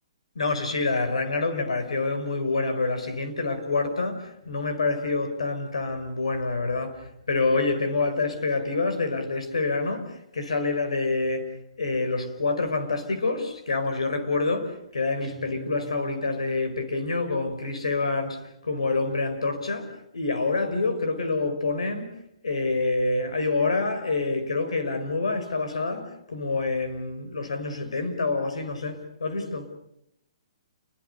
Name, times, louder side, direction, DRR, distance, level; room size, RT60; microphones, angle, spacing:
voice 1, 0.4-22.1 22.4-29.7, left 3 dB, 85° left, 5.2 m, -27 dB
Guitar, 15.2-16.9, right 5 dB, ahead, 2.2 m, -46 dB
29.5 x 22.0 x 6.8 m
hypercardioid pair, 140°, 3 cm